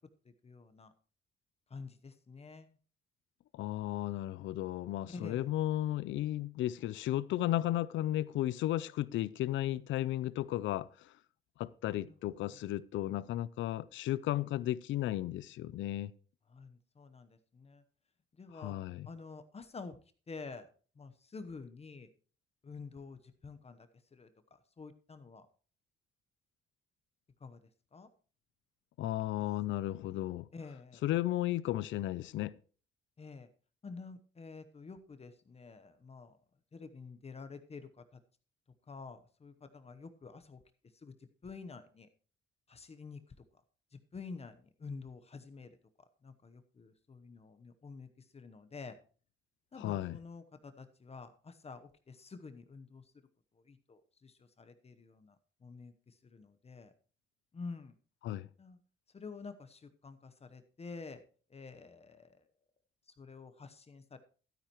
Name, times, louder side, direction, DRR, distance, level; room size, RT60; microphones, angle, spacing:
voice 1, 0.2-0.9 1.7-2.7 5.1-5.5 11.9-12.5 16.5-17.8 18.4-18.8 19.1-20.0 20.3-20.7 21.0-22.1 22.6-25.5 27.4-27.6 27.9-28.1 30.5-31.0 33.2-33.5 33.8-36.4 36.7-38.0 38.9-40.6 41.0-41.1 41.4-42.1 42.7-43.2 43.9-45.7 46.2-49.0 49.7-53.0 53.7-55.4 55.6-56.9 57.5-57.9 58.6-58.8 59.1-61.2 61.5-62.4 63.2-64.2, left 4 dB, 30° left, 0.9 m, -49 dB
voice 2, 3.5-11.1 11.6-16.1 18.5-19.1 29.0-30.5 31.0-32.6 49.8-50.2 58.2-58.5, left 14 dB, 75° left, 0.5 m, -34 dB
12.0 x 9.9 x 3.0 m
cardioid pair, 90°, 20 cm